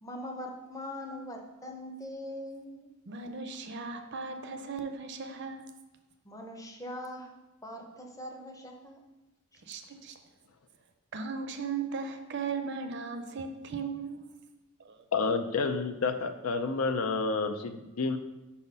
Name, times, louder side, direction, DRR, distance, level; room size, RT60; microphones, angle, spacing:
voice 1, 0.0-2.9 6.3-7.3 7.6-9.0, left 1 dB, 15° left, 2 dB, 0.7 m, -41 dB
voice 2, 3.1-5.6 9.7-10.2 11.1-14.3 14.8-15.0, right 5 dB, 50° right, 7 dB, 0.6 m, -37 dB
voice 3, 15.1-18.2, left 4 dB, 70° left, 8 dB, 0.5 m, -29 dB
5.6 x 4.2 x 5.3 m, 1.0 s
head